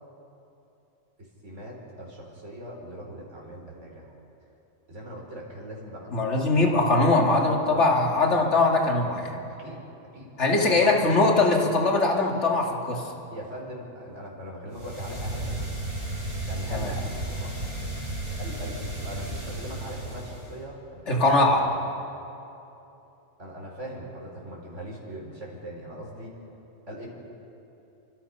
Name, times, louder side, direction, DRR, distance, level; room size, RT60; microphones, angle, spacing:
voice 1, 1.4-4.1 4.9-6.3 6.7-7.1 7.7-8.2 9.6-9.8 10.1-10.3 10.5-11.3 13.3-15.7 16.4-17.5 18.4-21.7 23.4-26.4 26.9-27.1, equal, 65° right, -3 dB, 5.0 m, -40 dB
voice 2, 6.1-9.4 10.4-13.0 16.7-16.9 21.1-21.6, left 2 dB, 60° left, 0 dB, 2.8 m, -21 dB
sound 1, 14.7-20.6, right 1 dB, 35° right, 8.3 m, -33 dB
30.0 x 25.0 x 5.7 m, 2.9 s
omnidirectional pair, 1.3 m